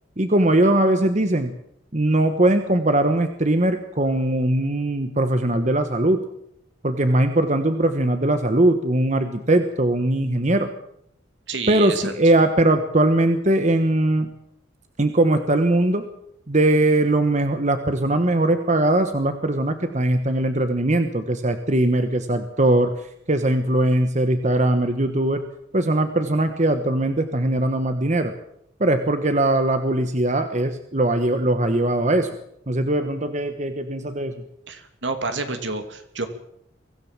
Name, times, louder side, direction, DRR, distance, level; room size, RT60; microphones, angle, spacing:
voice 1, 0.2-1.5 1.9-6.2 6.8-10.7 11.7-14.3 15.0-16.0 16.5-23.0 23.3-25.4 25.7-28.3 28.8-32.3 32.7-34.3, right 1 dB, 40° right, 8 dB, 1.2 m, -20 dB
voice 2, 11.5-12.3 34.7-36.3, right 3 dB, 65° right, 7 dB, 2.7 m, -29 dB
23.5 x 16.0 x 7.4 m, 0.74 s
head